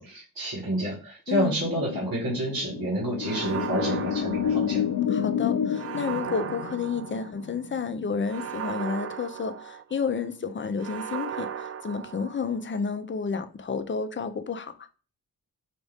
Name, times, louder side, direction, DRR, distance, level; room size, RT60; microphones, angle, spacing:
voice 1, 0.0-4.8, right 1 dB, 75° right, 1.7 m, -29 dB
sound 1, 1.6-8.5, left 8 dB, 75° left, 0.6 m, -30 dB
sound 2, 3.2-5.1 5.7-7.6 8.3-10.1 10.8-12.7, right 8 dB, 45° right, 0.4 m, -36 dB
voice 2, 5.1-14.9, left 5 dB, 35° left, 0.5 m, -31 dB
5.1 x 2.5 x 3.4 m
cardioid pair, 90°, 36 cm